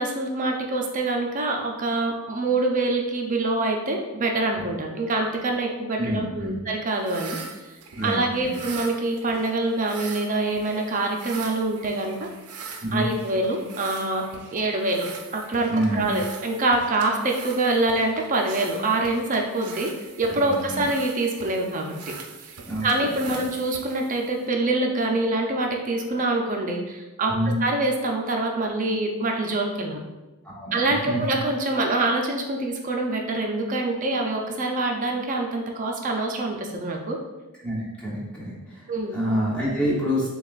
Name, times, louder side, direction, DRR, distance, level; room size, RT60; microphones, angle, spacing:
voice 1, 0.0-7.4 8.0-12.3 12.9-15.1 15.3-19.9 20.2-21.9 22.8-30.0 30.7-37.2 38.9-39.2, right 2 dB, 35° right, 2 dB, 0.5 m, -25 dB
voice 2, 6.0-6.6 8.0-8.6 12.8-13.1 15.7-16.2 20.7-20.8 22.7-23.4 27.3-27.6 30.5-31.2 37.6-40.3, equal, 5° left, -7 dB, 0.9 m, -27 dB
sound 1, 6.9-24.5, right 5 dB, 85° right, 0.5 m, -42 dB
6.7 x 2.3 x 2.4 m, 1.1 s
head